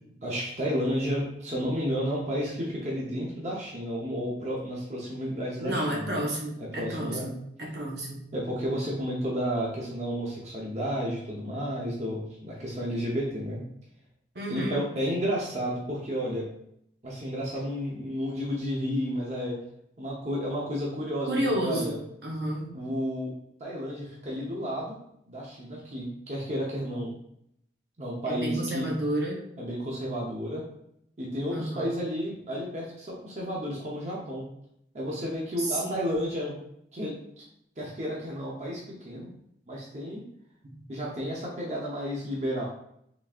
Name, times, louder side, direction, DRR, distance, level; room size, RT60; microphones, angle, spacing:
voice 1, 0.2-6.2 6.6-7.3 8.3-13.6 14.5-16.4 17.0-19.6 20.0-21.3 21.6-22.0 22.7-23.3 23.6-25.0 25.3-27.1 28.0-28.9 29.6-30.6 31.2-34.5 34.9-36.5 36.9-37.5 37.8-39.3 39.7-40.2 40.9-42.6, equal, 40° right, -4 dB, 0.7 m, -32 dB
voice 2, 5.6-8.2 14.3-14.8 21.2-22.7 28.3-29.4 31.5-31.9 35.6-36.1 40.6-40.7, right 1 dB, 70° right, -1 dB, 0.9 m, -31 dB
3.9 x 3.5 x 2.4 m, 0.73 s
head